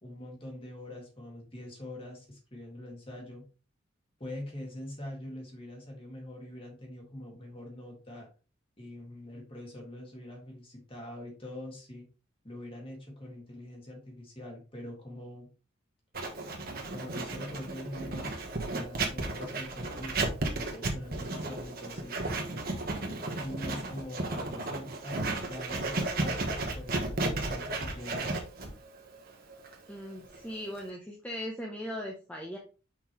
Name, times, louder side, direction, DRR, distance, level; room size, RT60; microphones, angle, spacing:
voice 1, 0.0-3.4 4.2-8.3 8.8-12.1 12.4-15.5 16.9-22.2 23.4-28.4, left 1 dB, 25° left, 0 dB, 2.0 m, -44 dB
Writing, 16.1-30.9, right 2 dB, 45° right, 1.2 m, -34 dB
voice 2, 29.9-32.6, equal, 5° left, 0 dB, 0.7 m, -39 dB
5.9 x 5.2 x 3.0 m, 0.35 s
head